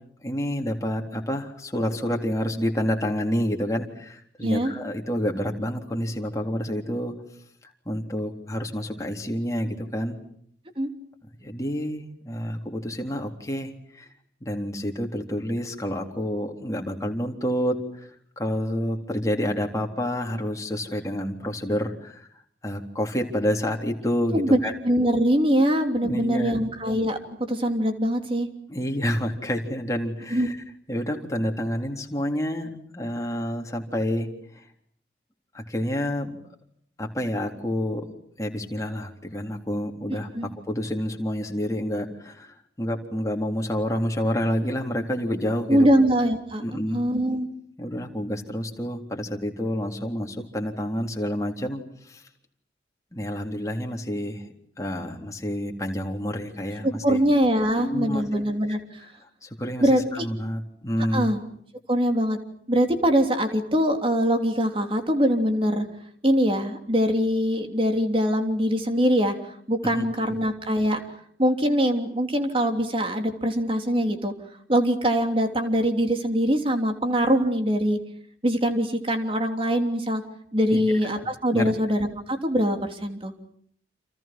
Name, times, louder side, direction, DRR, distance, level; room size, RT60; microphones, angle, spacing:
voice 1, 0.2-7.1 7.9-10.2 11.4-14.1 14.4-18.1 18.4-22.3 22.6-24.7 26.0-26.6 28.7-30.6 30.9-34.3 35.5-36.4 37.0-38.0 38.4-40.3 40.7-45.9 46.6-47.0 47.8-51.8 52.1-52.2 53.1-54.4 54.8-57.2 57.8-58.4 59.4-61.3 70.0-70.1 80.7-80.8 81.2-81.3 81.5-81.7, equal, 20° left, 2 dB, 3.7 m, -28 dB
voice 2, 4.4-4.7 10.8-10.9 24.3-28.5 30.3-30.5 40.3-40.5 45.7-46.6 46.9-47.5 56.8-58.8 59.8-60.3 61.1-61.4 61.9-62.4 62.7-65.8 66.2-69.4 69.7-71.0 71.4-74.3 74.7-78.0 78.4-80.2 80.5-83.3, equal, 30° right, 5 dB, 3.3 m, -23 dB
30.0 x 28.5 x 6.1 m, 0.64 s
head